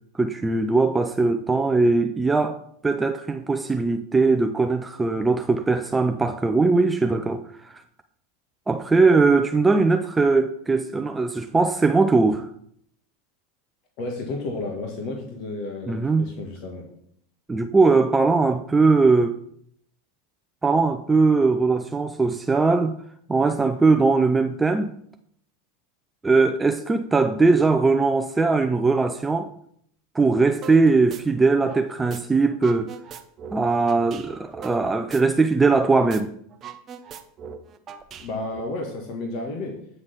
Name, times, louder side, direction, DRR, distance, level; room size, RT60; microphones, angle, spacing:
voice 1, 0.1-7.8 8.7-12.5 15.9-16.3 17.5-19.4 20.6-22.9 23.3-24.9 26.2-29.5 30.1-32.9 33.5-36.3, right 3 dB, 15° right, 0.5 m, -20 dB
voice 2, 14.0-16.8 38.2-39.8, left 2 dB, 55° left, 1.7 m, -32 dB
sound 1, 30.6-30.8 31.1-32.2 32.5-35.8 36.1-36.2 36.5-38.6, right 7 dB, 35° right, 0.8 m, -40 dB
8.8 x 3.9 x 6.6 m
hypercardioid pair, 110°, 0 cm